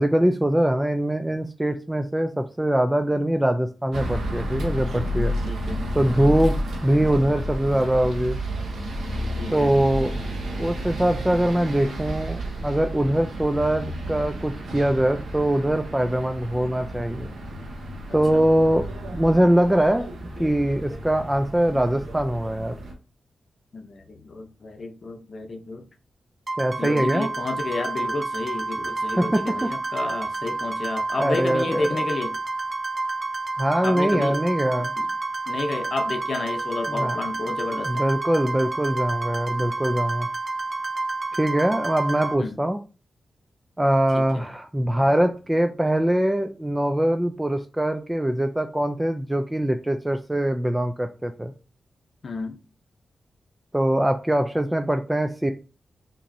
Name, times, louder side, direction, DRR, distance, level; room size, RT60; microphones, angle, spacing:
voice 1, 0.0-5.3 5.9-6.6 6.8-8.4 9.5-10.1 10.6-17.3 18.1-18.8 19.1-20.1 20.4-22.8 26.6-27.3 29.1-29.7 31.2-31.9 33.6-34.9 36.9-37.2 37.9-40.3 41.3-42.8 43.8-51.5 53.7-55.5, right 1 dB, 10° right, 0.3 m, -22 dB
sound 1, 3.9-22.9, equal, 90° right, 1.0 m, -31 dB
voice 2, 5.5-6.3 9.4-9.7 18.3-18.4 23.7-25.9 26.8-32.4 33.8-34.4 34.8-35.1 35.5-38.0 42.4-42.6 44.1-44.5 52.2-52.6, left 3 dB, 55° left, 0.6 m, -31 dB
sound 2, 26.5-42.3, right 3 dB, 35° right, 0.8 m, -29 dB
5.8 x 2.9 x 2.6 m
wide cardioid pair, 110°, 0 cm